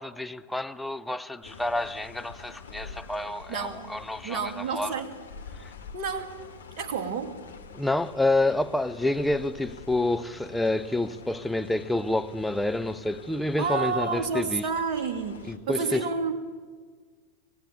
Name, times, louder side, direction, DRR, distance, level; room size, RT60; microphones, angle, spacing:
voice 1, 0.0-5.0 5.6-5.7 7.7-14.6 15.5-16.0, left 2 dB, 5° left, 0.7 m, -28 dB
sound 1, 1.4-15.6, left 5 dB, 70° left, 1.6 m, -46 dB
voice 2, 3.5-3.9 4.2-5.1 5.9-6.3 6.8-7.4 13.6-16.3, right 5 dB, 40° right, 2.4 m, -30 dB
25.0 x 18.5 x 8.7 m
figure-of-eight pair, 90°, 0 cm